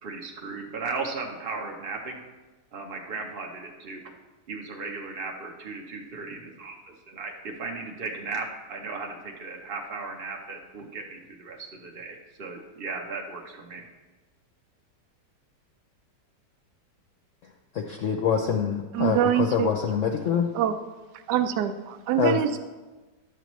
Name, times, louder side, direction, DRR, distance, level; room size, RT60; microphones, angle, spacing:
voice 1, 0.0-2.2 2.7-4.0 4.5-13.9, right 4 dB, 45° right, 1 dB, 0.8 m, -36 dB
voice 2, 17.7-20.5 22.2-22.4, left 7 dB, 65° left, 3 dB, 0.8 m, -25 dB
voice 3, 18.9-19.7 20.5-20.8 21.3-22.6, right 10 dB, 80° right, 8 dB, 1.1 m, -24 dB
11.5 x 7.5 x 3.1 m, 1.2 s
omnidirectional pair, 1.8 m